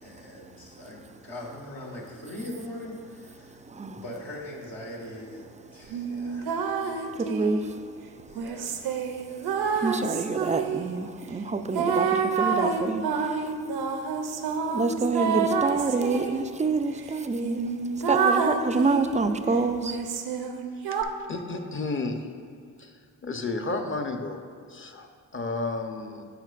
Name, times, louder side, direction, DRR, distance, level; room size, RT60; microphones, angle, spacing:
voice 1, 0.0-3.6 3.9-6.5 8.3-8.8, left 1 dB, 70° left, -4 dB, 1.7 m, -41 dB
voice 2, 3.7-4.0 6.1-6.3 7.1-7.8 9.2-9.3 9.7-13.5 14.5-20.0, right 3 dB, 20° right, 8 dB, 0.4 m, -27 dB
sound 1, 5.9-7.6 8.3-10.9 11.7-16.4 17.0-17.1 17.4-19.2 19.8-21.0, right 5 dB, 80° right, 0.7 m, -28 dB
voice 3, 21.3-22.2 22.8-22.9 23.2-26.2, left 3 dB, 35° left, 5 dB, 0.9 m, -32 dB
12.5 x 4.4 x 2.5 m, 2.2 s
cardioid pair, 60°, 38 cm